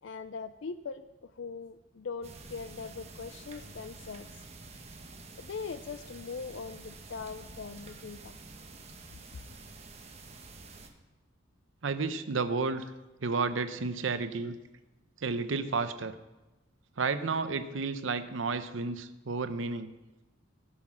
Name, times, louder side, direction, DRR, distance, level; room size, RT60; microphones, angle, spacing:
voice 1, 0.0-4.3 5.4-8.4, left 5 dB, 70° left, 12 dB, 0.4 m, -41 dB
sound 1, 2.2-10.9, right 3 dB, 35° right, 1.2 m, -49 dB
voice 2, 11.8-12.8 13.2-14.6 15.2-16.2 17.0-19.9, right 4 dB, 80° right, 11 dB, 0.7 m, -31 dB
16.5 x 5.8 x 6.2 m, 1.1 s
head